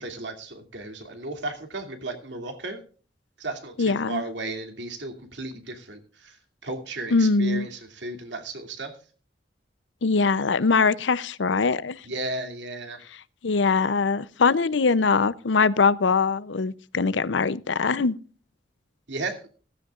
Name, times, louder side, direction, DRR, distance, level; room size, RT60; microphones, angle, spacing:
voice 1, 0.0-2.8 3.4-9.0 12.0-13.1 19.1-19.5, right 2 dB, 80° right, 2.7 m, -34 dB
voice 2, 3.8-4.2 7.1-7.7 10.0-12.0 13.4-18.2, left 4 dB, 85° left, 0.6 m, -22 dB
15.5 x 15.0 x 2.4 m
head